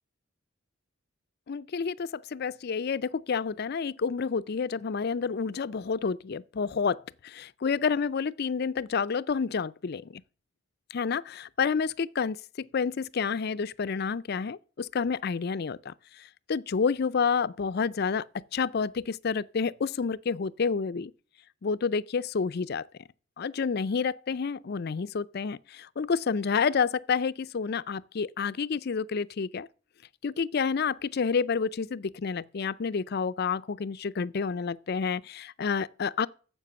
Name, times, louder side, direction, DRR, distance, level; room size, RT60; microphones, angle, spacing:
voice 1, 1.5-7.0 7.2-10.2 10.9-12.4 12.7-15.9 16.5-18.2 18.5-21.1 21.6-22.8 23.4-29.7 30.2-36.3, left 5 dB, 50° left, 0.4 m, -29 dB
10.0 x 7.5 x 6.8 m
head